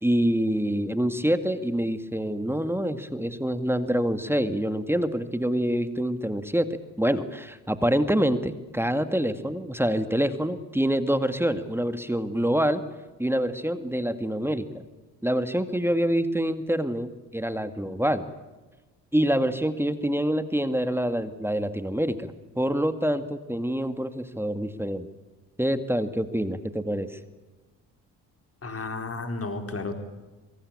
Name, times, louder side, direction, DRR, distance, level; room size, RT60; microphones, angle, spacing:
voice 1, 0.0-6.7 7.0-12.8 13.2-14.8 15.2-18.2 19.1-25.1 25.6-27.1, equal, 5° right, 10 dB, 2.1 m, -26 dB
voice 2, 28.6-29.9, left 3 dB, 30° left, 5 dB, 4.5 m, -32 dB
24.0 x 23.0 x 8.7 m, 1.2 s
figure-of-eight pair, 45°, 46 cm